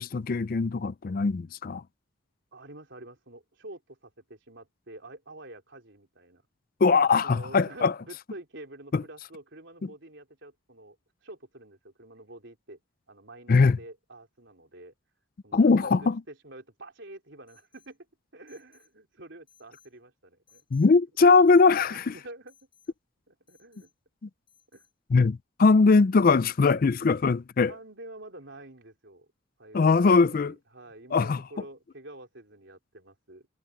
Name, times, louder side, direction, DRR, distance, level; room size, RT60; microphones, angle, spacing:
voice 1, 0.0-1.8 6.8-7.9 8.9-9.0 9.8-9.9 13.5-13.8 15.5-16.2 20.7-22.1 25.1-27.7 29.7-30.5 31.1-31.4, left 4 dB, 45° left, 0.4 m, -21 dB
voice 2, 2.5-6.4 7.2-11.0 11.2-12.8 13.1-14.9 15.4-18.1 18.3-20.9 21.9-22.6 23.3-23.9 24.7-24.9 27.7-29.3 29.6-33.5, right 1 dB, 60° right, 4.1 m, -47 dB
Alarm, 17.5-18.0 18.5-18.9 19.5-20.0 20.5-20.9 21.5-21.9 22.5-22.9 23.5-23.9 24.5-24.9, left 7 dB, 25° left, 8.0 m, -63 dB
head